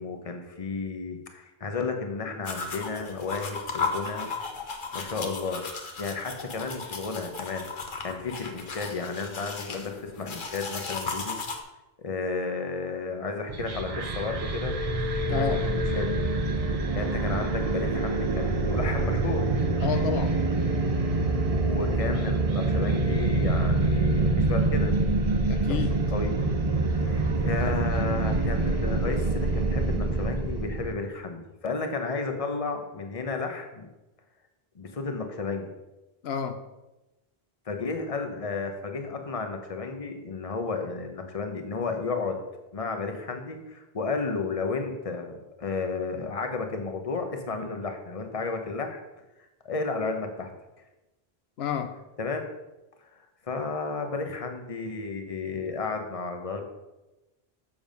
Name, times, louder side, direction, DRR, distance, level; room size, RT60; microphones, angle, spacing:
voice 1, 0.0-4.3 4.9-5.7 6.0-7.6 8.0-11.4 12.0-16.3 16.7-19.5 21.3-24.9 25.7-25.8 26.1-26.3 26.8-33.9 34.7-35.7 37.7-42.4 42.7-49.0 49.6-50.5 52.2-52.4 53.0-53.1 53.4-56.7, left 4 dB, 35° left, 5 dB, 1.0 m, -33 dB
sound 1, 2.4-11.6, left 4 dB, 55° left, 1.1 m, -35 dB
sound 2, 13.5-30.9, right 2 dB, 40° right, 0.8 m, -26 dB
voice 2, 15.3-15.6 19.8-20.4 25.5-26.0 36.2-36.6 51.6-52.0, left 7 dB, 80° left, 8 dB, 0.9 m, -30 dB
7.4 x 7.0 x 5.3 m, 1.0 s
omnidirectional pair, 1.0 m